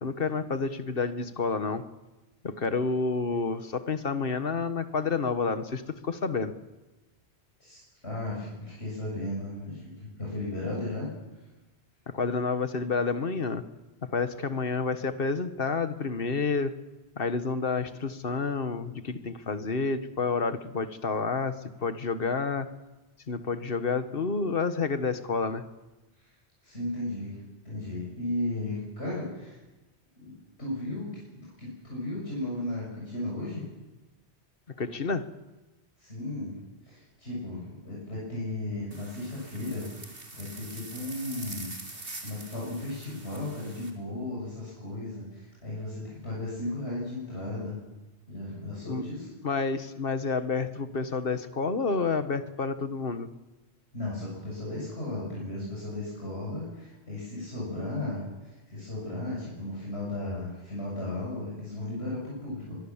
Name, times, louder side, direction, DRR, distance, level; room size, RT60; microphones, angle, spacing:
voice 1, 0.0-1.8 2.4-6.5 12.1-13.6 14.1-16.7 17.1-21.5 21.8-22.7 23.3-25.6 34.8-35.2 48.8-49.0 49.4-53.3, left 4 dB, 55° left, 10 dB, 1.6 m, -29 dB
voice 2, 7.6-11.1 26.2-26.3 26.6-29.6 30.2-30.3 30.6-31.1 31.4-33.6 36.0-36.6 36.8-47.8 48.3-49.3 53.9-62.8, left 1 dB, 75° left, -5 dB, 7.5 m, -35 dB
sound 1, 38.9-43.9, right 2 dB, 55° right, 3.5 m, -44 dB
23.5 x 22.0 x 7.3 m, 1.1 s
omnidirectional pair, 1.1 m